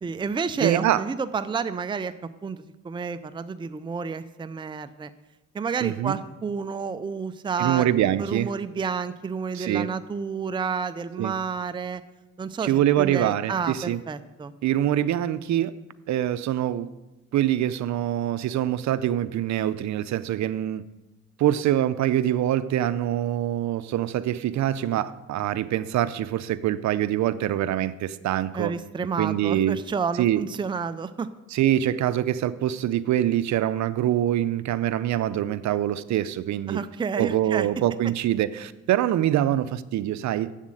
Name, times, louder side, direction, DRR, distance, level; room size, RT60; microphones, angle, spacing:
voice 1, 0.0-2.1 2.4-5.1 5.5-7.9 8.2-12.0 12.4-12.7 13.0-14.5 28.5-31.3 36.7-37.7, right 5 dB, 15° right, 11 dB, 0.4 m, -30 dB
voice 2, 0.6-1.0 5.8-6.2 7.6-8.5 9.5-9.9 11.2-11.3 12.6-14.0 14.6-15.7 16.1-16.9 17.3-20.8 21.4-28.7 29.2-29.8 30.2-30.4 31.5-36.8 37.2-40.5, right 12 dB, 70° right, 14 dB, 0.6 m, -24 dB
7.4 x 7.3 x 7.7 m, 1.0 s
cardioid pair, 90°, 30 cm